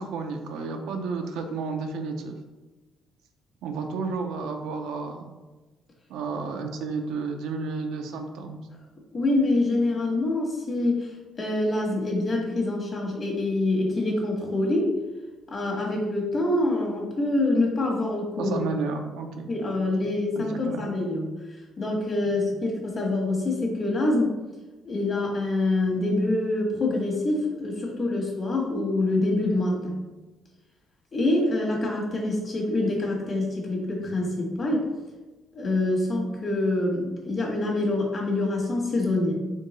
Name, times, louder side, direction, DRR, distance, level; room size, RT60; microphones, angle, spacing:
voice 1, 0.0-2.4 3.6-5.3 6.1-8.6 18.4-19.5 19.7-19.9 20.4-20.9, right 4 dB, 85° right, 4 dB, 0.5 m, -32 dB
voice 2, 9.1-15.0 15.5-18.6 19.5-21.3 21.8-24.3 24.8-30.0 31.1-34.9 35.5-39.3, left 2 dB, 40° left, -2 dB, 1.5 m, -25 dB
4.4 x 3.6 x 3.1 m, 1.1 s
cardioid pair, 105°, 0 cm